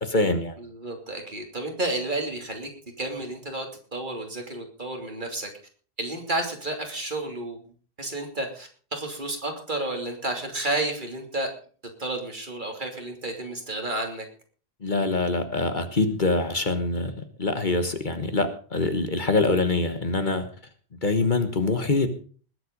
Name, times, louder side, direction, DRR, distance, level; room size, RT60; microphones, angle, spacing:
voice 1, 0.0-0.6 14.8-20.5 21.0-22.1, left 2 dB, 50° left, 8 dB, 1.6 m, -24 dB
voice 2, 0.6-2.7 3.0-5.5 6.0-7.6 8.0-11.5 12.0-14.2, right 2 dB, 50° right, 3 dB, 3.1 m, -31 dB
20.0 x 8.0 x 5.3 m, 0.41 s
omnidirectional pair, 1.1 m